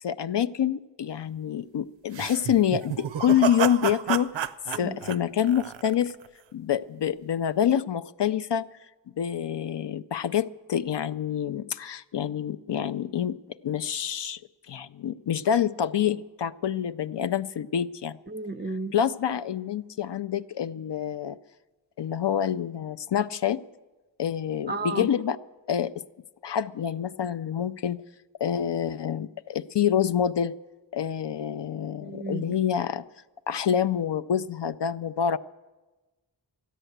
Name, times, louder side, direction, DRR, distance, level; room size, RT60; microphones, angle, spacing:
voice 1, 0.0-6.1 6.5-8.6 9.2-13.4 13.6-14.4 14.7-18.2 18.9-21.4 22.0-23.6 24.2-25.4 25.7-25.9 26.4-28.0 28.4-30.5 30.9-33.0 33.5-35.4, left 9 dB, 65° left, 13 dB, 0.5 m, -27 dB
sound 1, 2.1-6.3, right 9 dB, 80° right, 0.5 m, -30 dB
voice 2, 18.3-18.9 24.7-25.1 32.0-32.5, right 3 dB, 25° right, 11 dB, 0.5 m, -33 dB
13.5 x 10.0 x 7.9 m, 1.1 s
wide cardioid pair, 50°, 45 cm